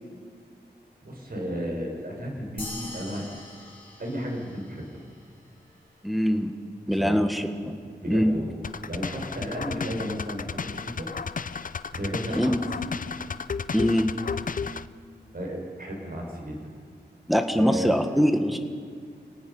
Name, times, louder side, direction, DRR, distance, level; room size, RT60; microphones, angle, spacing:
voice 1, 1.0-3.3 4.0-5.0 6.9-7.2 8.0-8.5 8.9-11.1 11.9-12.5 15.3-16.7 17.5-17.9, equal, 55° right, 0 dB, 5.6 m, -33 dB
sound 1, 2.6-5.3, left 2 dB, 30° left, 5.4 m, -42 dB
voice 2, 6.0-6.5 6.9-7.8 8.1-8.3 12.3-12.6 13.7-14.1 17.3-18.6, equal, ahead, 6 dB, 1.6 m, -23 dB
sound 2, 8.6-14.9, left 5 dB, 50° left, 0.5 m, -33 dB
29.5 x 18.0 x 5.6 m, 2.1 s
wide cardioid pair, 100°, 18 cm